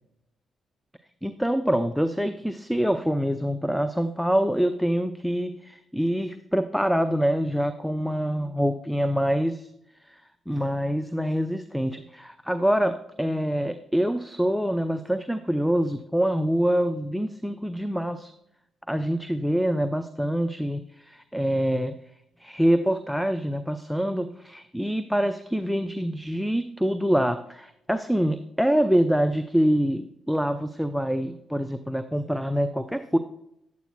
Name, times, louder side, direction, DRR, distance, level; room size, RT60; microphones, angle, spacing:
voice 1, 1.2-9.7 10.1-18.3 18.9-21.9 22.4-33.2, equal, ahead, 10 dB, 0.5 m, -25 dB
9.5 x 9.1 x 2.2 m, 0.78 s
hypercardioid pair, 40°, 0 cm